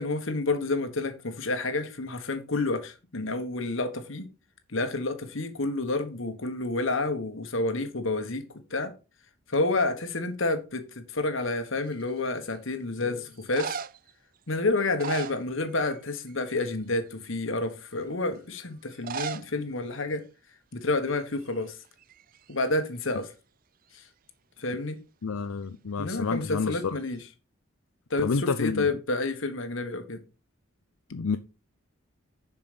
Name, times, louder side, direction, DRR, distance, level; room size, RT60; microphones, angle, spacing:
voice 1, 0.0-4.3 4.7-8.9 9.5-13.8 14.5-20.2 20.7-21.8 22.5-23.3 23.9-24.0 24.6-25.0 26.0-27.2 28.1-30.2, left 2 dB, 65° left, 1.4 m, -29 dB
sound 1, 11.9-12.4 13.3-14.1 14.8-16.0 16.3-16.6 17.2-17.3 18.9-19.5 19.8-19.9 20.1-20.2 20.9-21.1 21.4-22.6 26.6-27.2, right 6 dB, 40° right, 0.4 m, -38 dB
voice 2, 25.2-27.0 28.2-28.9 31.1-31.4, left 4 dB, 85° left, 0.6 m, -29 dB
7.2 x 5.9 x 5.1 m
head